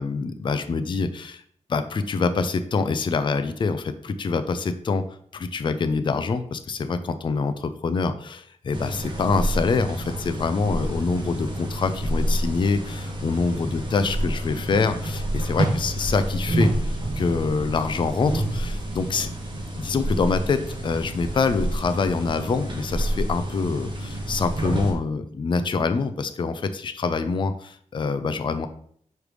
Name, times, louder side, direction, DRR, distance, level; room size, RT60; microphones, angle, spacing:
voice 1, 0.0-1.4 1.7-5.0 5.3-19.3 19.7-28.7, left 4 dB, 40° left, 10 dB, 0.4 m, -25 dB
sound 1, 8.7-24.9, right 1 dB, 35° right, 1.0 m, -28 dB
5.1 x 3.2 x 3.2 m, 0.62 s
wide cardioid pair, 115°, 13 cm